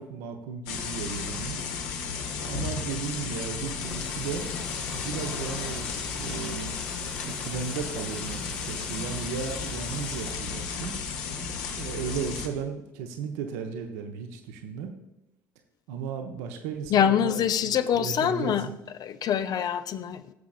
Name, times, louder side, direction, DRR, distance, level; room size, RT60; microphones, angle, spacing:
voice 1, 0.0-1.6 2.3-4.5 4.9-6.8 7.2-11.0 11.7-14.9 15.9-18.7, right 6 dB, 65° right, 5 dB, 0.8 m, -35 dB
sound 1, 0.7-12.5, left 5 dB, 65° left, 1.1 m, -34 dB
Rain, 3.9-10.3, left 1 dB, 10° left, 1.3 m, -46 dB
voice 2, 16.9-18.7 19.0-20.2, left 9 dB, 45° left, 11 dB, 0.5 m, -25 dB
17.0 x 7.0 x 2.4 m, 0.95 s
figure-of-eight pair, 55°, 9 cm